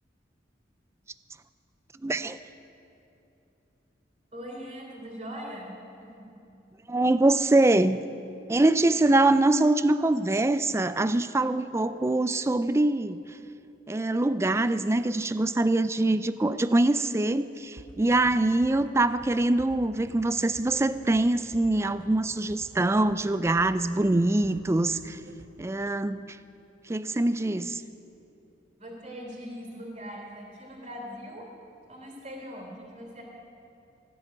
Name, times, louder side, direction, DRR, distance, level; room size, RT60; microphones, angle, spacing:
voice 1, 2.0-2.4 6.9-8.0 8.5-13.2 13.9-25.2 25.6-26.4 26.9-27.8, right 2 dB, 15° right, 13 dB, 0.3 m, -24 dB
voice 2, 4.3-5.7 6.0-6.4 28.8-31.5 31.9-33.2, equal, 35° right, -1 dB, 3.2 m, -41 dB
sound 1, 17.8-25.5, right 1 dB, 80° right, 1.1 m, -50 dB
16.0 x 6.9 x 9.4 m, 2.9 s
head